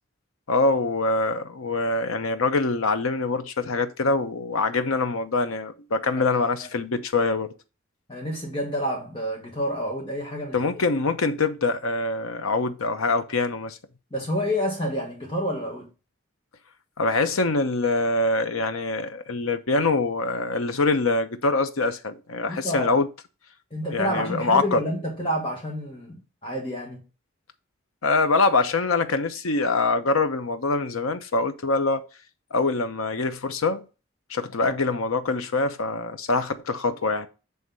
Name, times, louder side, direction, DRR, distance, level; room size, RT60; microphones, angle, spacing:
voice 1, 0.5-7.5 10.5-13.8 17.0-23.1 23.9-24.8 28.0-32.0 32.5-33.8 34.3-37.3, left 3 dB, 90° left, 0.9 m, -24 dB
voice 2, 8.1-10.6 14.1-15.9 22.5-23.0 23.7-27.0 34.6-34.7, equal, 25° left, 1.6 m, -29 dB
7.9 x 3.5 x 5.3 m
head